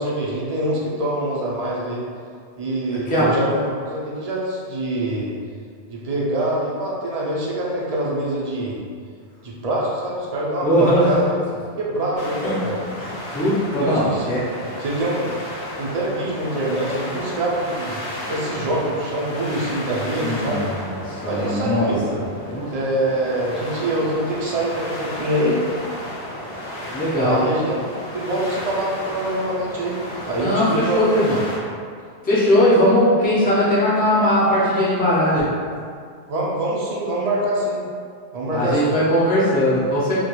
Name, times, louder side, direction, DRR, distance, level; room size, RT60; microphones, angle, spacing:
voice 1, 0.0-2.0 2.6-5.3 5.9-8.8 9.4-11.4 11.8-12.8 13.8-14.3 14.8-15.3 15.8-20.6 21.3-22.0 22.7-25.6 27.2-27.8 28.1-30.0 30.3-31.1 36.3-37.8 38.3-38.9, right 1 dB, 55° right, -5 dB, 0.4 m, -24 dB
voice 2, 10.6-11.1 12.4-12.6 13.0-13.1 13.3-14.6 20.2-22.7 26.9-27.4 30.4-31.4 32.2-35.5 38.5-40.1, equal, 15° left, -8 dB, 0.3 m, -19 dB
sound 1, 12.2-31.6, left 1 dB, 70° left, 0.8 m, -33 dB
2.3 x 2.2 x 2.9 m, 2.1 s
omnidirectional pair, 1.1 m